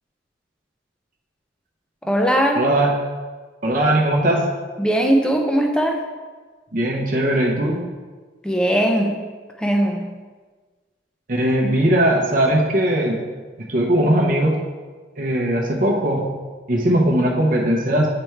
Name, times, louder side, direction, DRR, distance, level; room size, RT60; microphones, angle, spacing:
voice 1, 2.0-2.6 4.8-6.0 8.4-9.1 9.6-10.0, right 1 dB, 5° left, 2 dB, 0.5 m, -19 dB
voice 2, 2.5-2.9 3.6-4.5 6.7-7.8 11.3-13.2 13.6-14.6 15.2-16.3 16.7-18.1, right 1 dB, 45° right, -1 dB, 0.8 m, -19 dB
7.7 x 3.4 x 4.5 m, 1.4 s
head